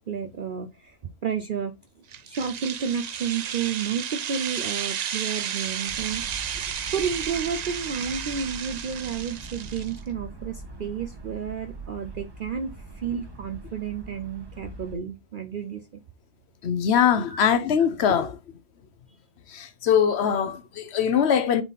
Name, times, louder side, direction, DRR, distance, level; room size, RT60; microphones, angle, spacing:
voice 1, 0.1-1.0 1.2-1.7 2.3-6.2 6.9-16.0 17.3-17.5, right 7 dB, 50° right, 0.7 m, -31 dB
sound 1, 2.1-10.0, right 8 dB, 75° right, 0.3 m, -33 dB
sound 2, 5.9-15.0, right 2 dB, 20° right, 1.2 m, -42 dB
voice 2, 16.6-18.4 19.5-21.6, left 8 dB, 60° left, 1.0 m, -22 dB
8.0 x 3.7 x 4.1 m
omnidirectional pair, 1.3 m